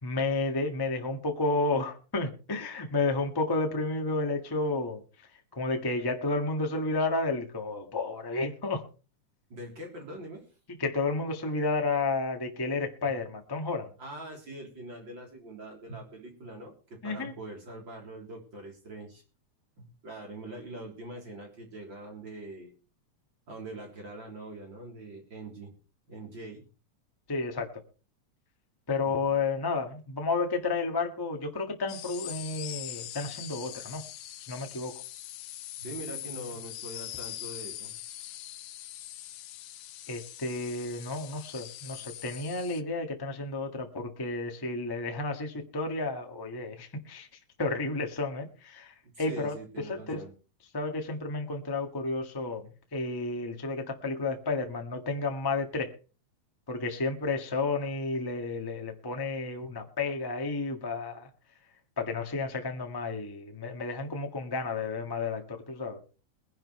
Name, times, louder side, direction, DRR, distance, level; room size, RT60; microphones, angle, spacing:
voice 1, 0.0-5.0 5.5-8.8 10.8-13.9 17.0-17.3 27.3-27.7 28.9-34.0 34.5-34.9 40.1-47.3 47.6-49.5 49.9-50.2 50.7-55.9 56.7-61.3 62.0-66.0, left 3 dB, 15° left, 3 dB, 0.9 m, -31 dB
voice 2, 9.5-10.4 14.0-19.2 19.8-22.7 23.5-25.7 26.1-26.6 29.0-29.3 35.8-37.9 49.0-50.3 59.6-59.8, right 2 dB, 40° right, 1 dB, 4.1 m, -43 dB
sound 1, 31.9-42.8, left 13 dB, 70° left, 1.5 m, -42 dB
22.0 x 10.5 x 3.2 m, 0.35 s
omnidirectional pair, 3.5 m